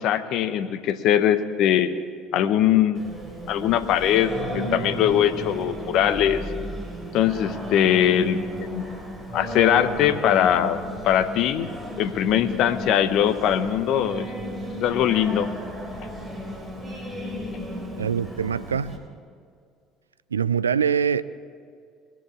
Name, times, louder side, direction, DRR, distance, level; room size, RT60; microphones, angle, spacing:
voice 1, 0.0-1.9 2.3-3.0 3.5-6.4 7.1-8.8 9.3-10.8 11.0-11.7 12.0-14.3 14.8-15.5, left 10 dB, 55° left, 11 dB, 0.8 m, -21 dB
Singing, 2.9-19.0, equal, 15° right, 3.6 m, -34 dB
voice 2, 18.0-19.0 20.3-21.2, right 7 dB, 80° right, 17 dB, 0.3 m, -24 dB
21.5 x 7.3 x 7.0 m, 2.3 s
figure-of-eight pair, 55°, 0 cm